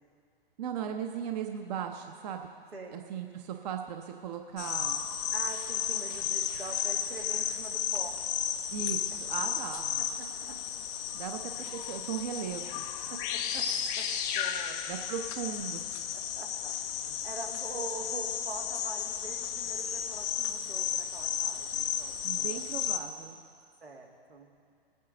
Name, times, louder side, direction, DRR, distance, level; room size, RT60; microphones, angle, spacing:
voice 1, 0.6-2.5 2.9-5.0 8.7-10.0 11.1-12.9 14.9-15.9 22.2-23.4, right 8 dB, 45° right, 5 dB, 0.8 m, -37 dB
voice 2, 2.7-3.0 5.3-8.2 10.2-10.6 13.1-13.7 14.0-14.1 14.4-14.8 16.4-22.8 23.8-24.5, right 3 dB, 85° right, 0 dB, 2.1 m, -44 dB
sound 1, 4.6-23.0, left 9 dB, 15° left, 0.3 m, -33 dB
20.0 x 9.3 x 3.9 m, 2.2 s
figure-of-eight pair, 120°, 30 cm